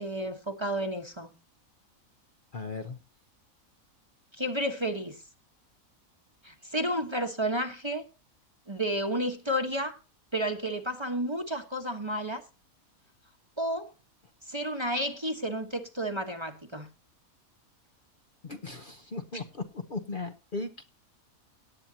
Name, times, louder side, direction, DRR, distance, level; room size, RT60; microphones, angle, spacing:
voice 1, 0.0-1.3 4.3-5.2 6.4-8.0 8.7-10.0 10.3-12.4 13.6-13.9 14.5-16.9 19.3-19.4, equal, 20° right, 1.2 m, -31 dB
voice 2, 2.5-3.0 18.4-20.8, left 3 dB, 40° left, 1.0 m, -37 dB
18.0 x 8.8 x 2.8 m
omnidirectional pair, 1.5 m